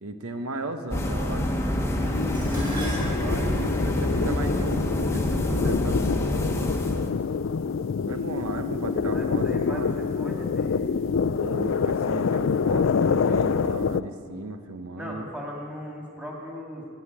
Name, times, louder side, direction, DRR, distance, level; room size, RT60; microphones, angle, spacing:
voice 1, 0.0-6.1 8.1-10.0 11.4-15.2, right 2 dB, 85° right, 7 dB, 1.0 m, -35 dB
sound 1, 0.9-7.1, left 1 dB, 15° left, 1.0 m, -27 dB
sound 2, 2.0-14.0, left 5 dB, 60° left, 0.4 m, -26 dB
Dishes pots and pans, 2.3-6.7 7.6-8.0 8.4-9.2 9.5-9.6, right 1 dB, 20° right, 5.0 m, -40 dB
voice 2, 9.1-10.8 15.0-16.9, left 1 dB, 5° right, -2 dB, 2.5 m, -37 dB
13.5 x 9.5 x 9.9 m, 2.2 s
head